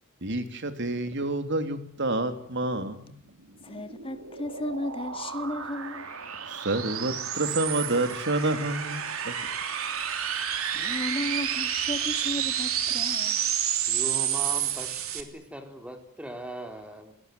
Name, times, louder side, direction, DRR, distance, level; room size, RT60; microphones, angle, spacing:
voice 1, 0.2-3.2 6.5-9.5, right 2 dB, 60° right, 3.2 m, -29 dB
sound 1, 3.4-15.2, right 9 dB, 85° right, 3.2 m, -30 dB
voice 2, 3.6-6.1 10.7-13.4, left 1 dB, 25° left, 2.0 m, -34 dB
voice 3, 13.9-17.1, right 1 dB, 5° right, 4.0 m, -39 dB
28.5 x 18.5 x 9.5 m
head